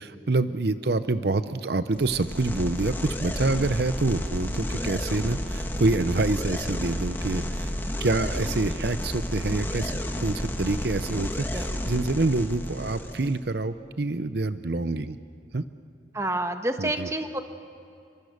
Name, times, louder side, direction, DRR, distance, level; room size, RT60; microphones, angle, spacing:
voice 1, 0.0-7.7 8.0-15.2 15.5-15.6 16.8-17.1, right 2 dB, 65° right, 12 dB, 0.7 m, -27 dB
sound 1, 1.9-13.4, equal, 10° left, 1.5 m, -31 dB
voice 2, 16.1-17.4, right 1 dB, 15° right, 6 dB, 1.2 m, -29 dB
28.5 x 24.0 x 6.7 m, 2.4 s
head